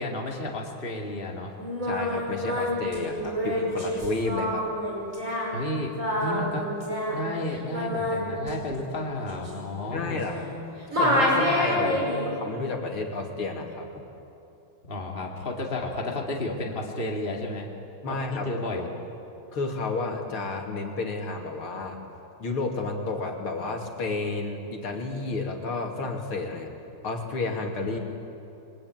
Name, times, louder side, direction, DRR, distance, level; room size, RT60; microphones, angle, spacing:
voice 1, 0.0-1.5 5.5-5.9 6.2-6.7 7.1-10.2 11.8-12.3 14.8-17.7 18.1-18.9 27.8-28.0, left 2 dB, 25° left, 0 dB, 2.7 m, -32 dB
Singing, 1.6-10.6 10.9-12.3, equal, 35° right, 6.2 m, -28 dB
voice 2, 1.8-4.7 9.9-10.5 10.9-12.0 12.3-14.0 18.0-18.8 19.5-22.0 22.4-26.7 27.0-28.0, left 3 dB, 75° left, 2 dB, 3.6 m, -31 dB
28.5 x 22.0 x 9.3 m, 2.8 s
omnidirectional pair, 2.4 m